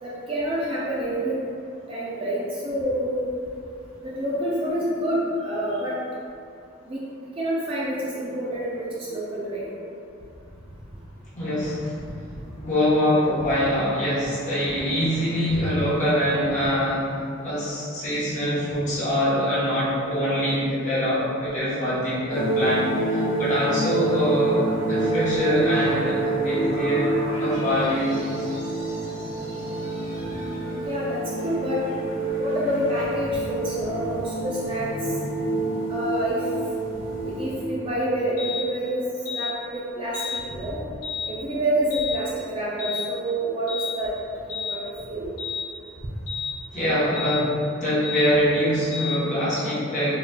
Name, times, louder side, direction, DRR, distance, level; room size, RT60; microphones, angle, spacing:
voice 1, 0.0-1.4 1.9-3.2 4.0-6.0 6.9-7.0 7.4-9.7 15.5-15.6 30.3-31.8 32.4-34.9 35.9-36.4 37.2-39.0 39.3-40.8 41.3-44.1 44.4-44.8 45.1-45.3, right 1 dB, 25° right, -7 dB, 0.3 m, -27 dB
voice 2, 11.4-12.0 12.5-17.1 17.4-27.1 27.4-28.2 46.7-50.2, equal, 35° left, -10 dB, 0.8 m, -24 dB
sound 1, 22.3-37.6, right 2 dB, 70° right, 1.4 m, -28 dB
sound 2, 38.4-38.7 39.2-39.5 40.1-40.4 41.0-41.3 41.9-42.2 42.8-43.1 43.7-44.0 44.5-44.8 45.4-45.7 46.3-46.5 47.1-47.4 48.0-48.3 48.9-49.2, left 5 dB, 65° left, 1.0 m, -31 dB
3.8 x 2.2 x 2.2 m, 2.4 s
head